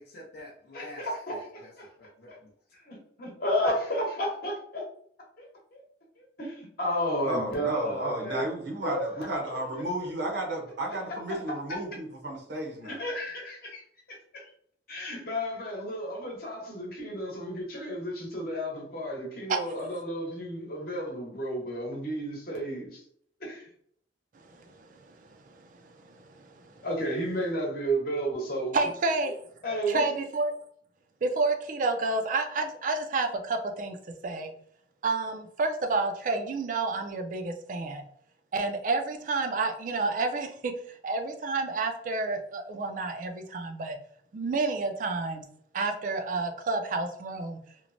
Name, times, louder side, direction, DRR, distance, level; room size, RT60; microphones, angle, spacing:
voice 1, 0.0-1.7 2.0-2.5, left 1 dB, 70° left, -3 dB, 0.6 m, -48 dB
voice 2, 0.7-1.9 2.3-2.4 2.8-4.8 5.4-5.5 5.7-5.8 6.2-8.4 8.8-9.3 9.7-9.8 11.7-11.8 12.8-13.8 14.1-14.5 14.9-23.0 23.4-23.7 26.8-28.8 29.6-30.0, equal, 55° left, -1 dB, 0.9 m, -32 dB
voice 3, 7.3-13.0, right 1 dB, 70° right, 1 dB, 0.8 m, -33 dB
voice 4, 24.4-26.8 28.7-29.3 29.9-30.5 31.2-34.0 34.2-34.5 35.0-38.0 38.5-40.7 41.0-44.0 44.3-45.5 45.7-47.6, right 3 dB, 45° right, 6 dB, 0.3 m, -30 dB
3.0 x 2.1 x 2.5 m, 0.63 s
head